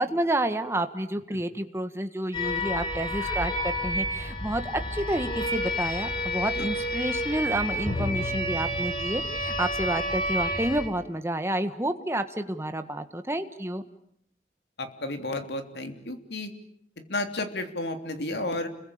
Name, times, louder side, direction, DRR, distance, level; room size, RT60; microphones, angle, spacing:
voice 1, 0.0-13.8, right 1 dB, 15° right, 8 dB, 1.5 m, -29 dB
sound 1, 2.3-10.9, equal, 25° left, 4.6 m, -30 dB
voice 2, 14.8-16.5 17.0-18.7, left 2 dB, 70° left, 6 dB, 3.3 m, -32 dB
29.5 x 22.0 x 8.7 m, 0.71 s
head